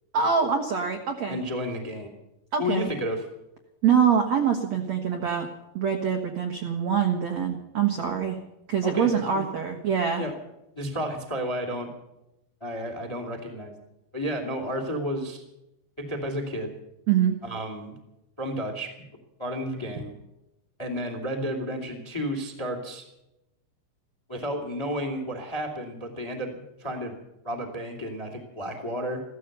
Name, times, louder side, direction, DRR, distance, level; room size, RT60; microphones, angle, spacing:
voice 1, 0.1-1.4 2.5-2.9 3.8-5.5 5.7-8.4 8.7-10.3 17.1-17.3, right 7 dB, 65° right, 3 dB, 1.8 m, -24 dB
voice 2, 1.3-2.1 2.6-3.2 8.8-9.4 10.2-10.3 10.7-11.9 12.6-13.7 14.1-15.4 16.0-16.8 17.4-18.0 18.4-19.1 19.4-20.1 20.8-23.0 24.3-27.1 27.4-29.2, equal, 10° left, 4 dB, 1.5 m, -32 dB
15.5 x 14.0 x 6.7 m, 0.90 s
omnidirectional pair, 5.1 m